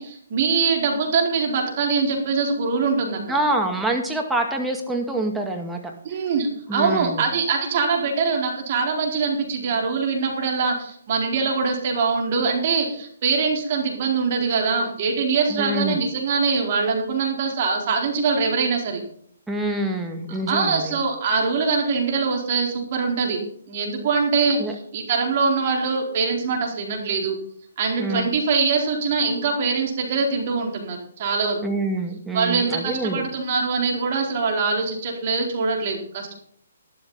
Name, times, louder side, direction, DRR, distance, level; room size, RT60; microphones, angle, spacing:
voice 1, 0.0-3.4 6.0-19.0 20.3-23.4 23.7-27.4 27.8-31.6 32.3-36.3, right 4 dB, 45° right, 2 dB, 4.1 m, -23 dB
voice 2, 3.3-5.8 6.7-7.3 15.5-16.0 19.5-21.0 24.6-24.7 28.0-28.3 31.6-33.3, right 1 dB, 5° right, 1 dB, 2.2 m, -26 dB
12.5 x 12.0 x 4.1 m, 0.63 s
figure-of-eight pair, 135°, 0 cm